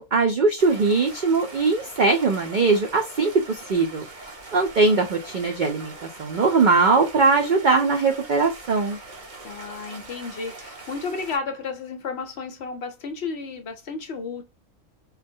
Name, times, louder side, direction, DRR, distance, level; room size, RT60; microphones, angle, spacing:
voice 1, 0.0-4.0 4.5-5.9 6.2-9.0, right 4 dB, 75° right, 0.4 m, -20 dB
Stream, 0.6-11.4, right 2 dB, 40° right, 0.9 m, -42 dB
voice 2, 9.4-14.5, left 4 dB, 60° left, 0.8 m, -32 dB
3.7 x 2.1 x 2.6 m
omnidirectional pair, 1.4 m